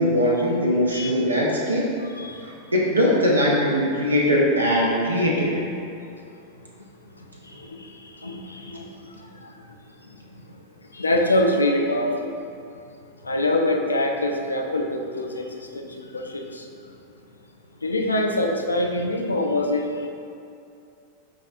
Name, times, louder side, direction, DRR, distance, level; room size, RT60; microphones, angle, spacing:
voice 1, 0.0-1.9 2.4-5.6, equal, 80° right, -4 dB, 0.5 m, -21 dB
voice 2, 2.1-2.5 6.3-6.4 7.2-9.7 10.0-12.4 13.2-16.7 17.8-20.1, left 1 dB, 80° left, 2 dB, 0.3 m, -26 dB
5.6 x 2.3 x 2.4 m, 2.6 s
figure-of-eight pair, 90°, 0 cm